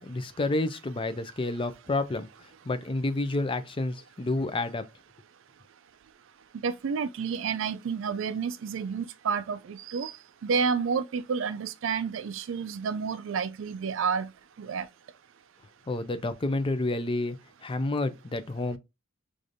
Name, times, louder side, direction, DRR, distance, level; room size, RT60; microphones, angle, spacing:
voice 1, 0.0-2.3 2.7-4.9 15.9-18.8, left 2 dB, 25° left, 0.4 m, -29 dB
voice 2, 6.6-10.1 10.4-14.3 14.6-14.9, right 6 dB, 65° right, 0.4 m, -30 dB
4.8 x 2.6 x 2.6 m
head